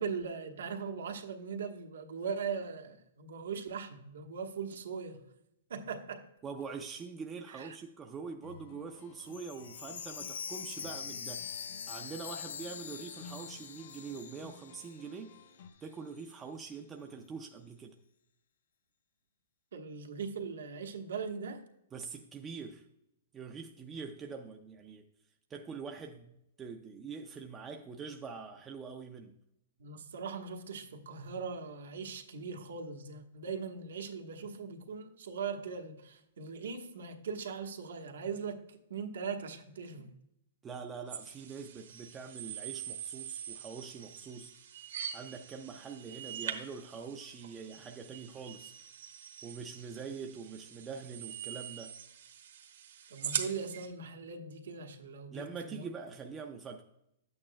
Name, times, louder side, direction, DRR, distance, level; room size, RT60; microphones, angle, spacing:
voice 1, 0.0-5.2 5.7-6.3 7.5-7.8 19.7-21.6 29.8-40.2 53.1-55.9, right 5 dB, 85° right, 1.2 m, -40 dB
voice 2, 6.4-15.4 15.8-18.0 21.9-22.9 23.3-25.1 25.5-29.4 40.6-44.5 45.1-48.7 49.4-51.9 55.3-56.8, right 5 dB, 10° right, 0.3 m, -44 dB
sound 1, 8.4-15.7, left 4 dB, 40° left, 0.7 m, -55 dB
Chime, 9.3-15.2 15.5-15.6 16.2-16.3, left 7 dB, 75° left, 0.6 m, -44 dB
sound 2, 41.1-53.9, right 9 dB, 65° right, 1.1 m, -43 dB
11.0 x 8.6 x 2.2 m
hypercardioid pair, 175°, 0 cm